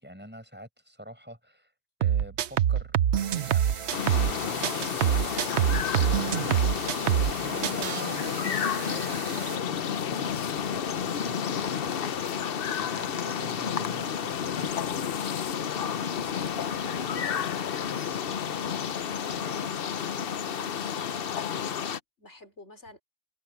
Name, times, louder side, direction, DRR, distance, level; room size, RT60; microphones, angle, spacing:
voice 1, 0.0-1.7 2.0-3.0 3.3-7.0 7.3-11.9 12.8-15.0, equal, 10° right, 5.8 m, -46 dB
sound 1, 2.0-4.4 4.6-7.4 7.6-8.0, right 10 dB, 75° right, 1.0 m, -25 dB
sound 2, 3.2-9.6, right 6 dB, 40° right, 0.5 m, -40 dB
sound 3, 3.9-22.0, left 8 dB, 60° left, 0.9 m, -31 dB
voice 2, 16.1-18.1 18.4-23.0, left 1 dB, 80° left, 5.2 m, -51 dB
omnidirectional pair, 1.2 m